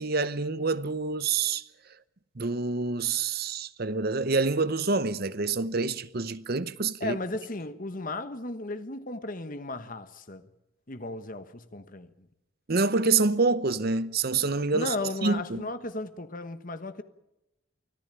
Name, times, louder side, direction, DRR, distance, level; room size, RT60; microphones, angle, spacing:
voice 1, 0.0-1.6 2.4-7.2 12.7-15.6, right 4 dB, 45° right, 0.8 m, -27 dB
voice 2, 7.0-10.5 10.9-12.3 14.7-17.0, left 2 dB, 40° left, 1.2 m, -35 dB
24.5 x 14.5 x 9.0 m
head